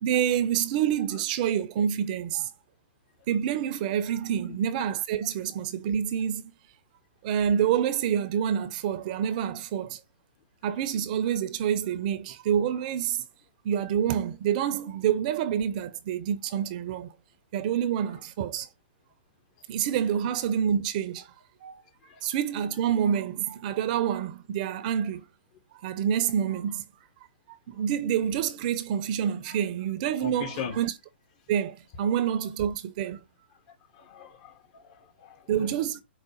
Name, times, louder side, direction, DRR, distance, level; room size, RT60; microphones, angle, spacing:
voice 1, 0.0-2.5 3.3-6.5 7.2-10.0 10.6-13.2 13.6-17.1 17.5-18.7 19.7-21.3 21.6-21.8 22.2-25.3 25.8-26.8 27.5-30.9 31.5-33.2 35.5-36.0, right 9 dB, 40° right, 0.5 m, -27 dB
voice 2, 30.2-30.8 33.9-35.7, left 6 dB, 40° left, 0.9 m, -39 dB
4.8 x 2.2 x 4.3 m
hypercardioid pair, 125°, 6 cm